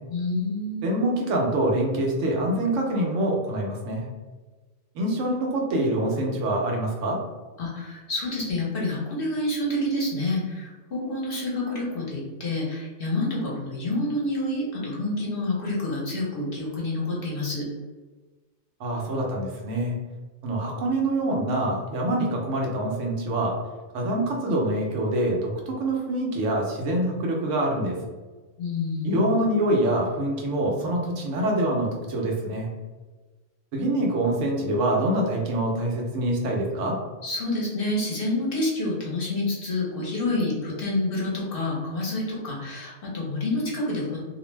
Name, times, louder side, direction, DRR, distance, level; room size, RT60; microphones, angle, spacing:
voice 1, 0.1-0.9 7.6-17.7 28.6-29.3 37.2-44.2, left 2 dB, 55° left, -4 dB, 0.9 m, -28 dB
voice 2, 0.8-4.1 4.9-7.2 18.8-19.9 20.4-23.6 23.9-28.0 29.0-32.7 33.7-37.0, right 1 dB, 80° right, -1 dB, 1.0 m, -25 dB
2.6 x 2.0 x 3.1 m, 1.3 s
omnidirectional pair, 1.3 m